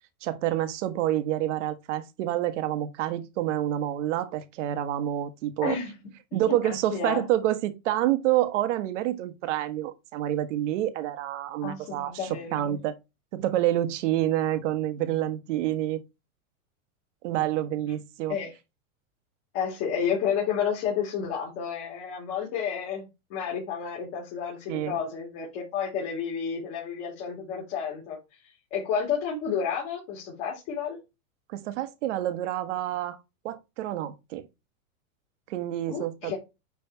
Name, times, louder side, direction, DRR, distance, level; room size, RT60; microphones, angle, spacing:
voice 1, 0.2-5.8 6.3-13.0 13.3-16.0 17.2-18.4 24.7-25.0 31.5-33.2 33.4-34.5 35.5-36.3, right 13 dB, 55° right, 1.3 m, -28 dB
voice 2, 5.6-6.0 6.5-7.3 11.6-12.8 18.3-18.5 19.5-23.0 23.3-31.0 35.9-36.4, left 7 dB, 45° left, 3.4 m, -31 dB
9.5 x 3.4 x 4.4 m
supercardioid pair, 145°, 43 cm